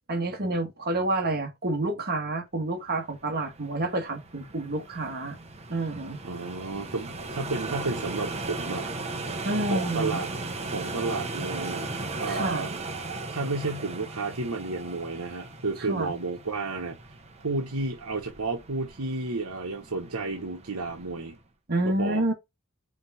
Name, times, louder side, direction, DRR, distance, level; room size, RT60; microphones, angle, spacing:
voice 1, 0.1-5.4 5.7-6.2 9.4-10.2 12.3-12.7 15.9-16.2 21.7-22.3, right 2 dB, 45° right, 1.7 m, -29 dB
sound 1, 3.1-21.4, right 3 dB, 30° right, 1.0 m, -37 dB
voice 2, 6.2-8.9 9.7-10.3 10.6-11.9 12.2-12.7 13.3-17.0 17.4-21.4 21.8-22.2, right 3 dB, 85° right, 1.1 m, -32 dB
5.1 x 3.6 x 5.6 m
head